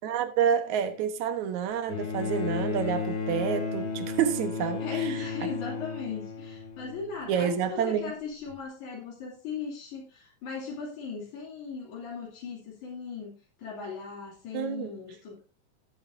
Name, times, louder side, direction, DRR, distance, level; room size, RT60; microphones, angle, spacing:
voice 1, 0.0-5.5 7.3-8.1 14.5-14.9, right 8 dB, 75° right, 2.6 m, -29 dB
Bowed string instrument, 1.9-7.4 8.5-8.6, left 5 dB, 50° left, 2.6 m, -34 dB
voice 2, 4.8-15.4, left 5 dB, 90° left, 4.1 m, -38 dB
16.5 x 8.5 x 2.6 m
omnidirectional pair, 3.3 m